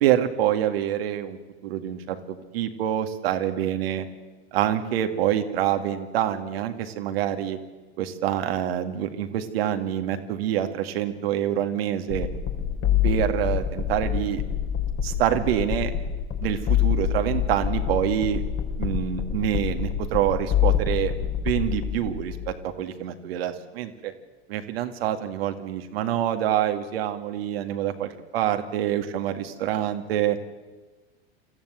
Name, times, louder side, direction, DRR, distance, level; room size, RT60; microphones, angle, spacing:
voice 1, 0.0-4.1 4.5-7.6 8.0-12.3 13.0-14.4 15.0-15.9 16.4-18.4 18.8-21.1 21.4-24.1 24.5-30.4, right 11 dB, 65° right, 7 dB, 2.1 m, -26 dB
sound 1, 12.1-22.5, left 9 dB, 40° left, 3.5 m, -26 dB
26.5 x 14.5 x 7.8 m, 1.3 s
figure-of-eight pair, 85°, 32 cm